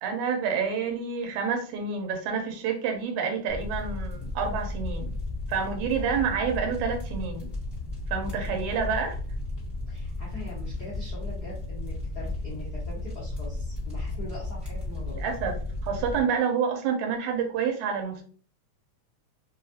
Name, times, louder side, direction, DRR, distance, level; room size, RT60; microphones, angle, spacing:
voice 1, 0.0-5.1 5.5-7.5 8.1-9.2 15.0-18.2, right 6 dB, 80° right, 2.0 m, -28 dB
sound 1, 3.5-16.2, left 2 dB, 10° right, 0.8 m, -34 dB
voice 2, 9.9-15.3, left 1 dB, 70° left, 0.9 m, -42 dB
4.8 x 2.3 x 2.6 m
omnidirectional pair, 3.5 m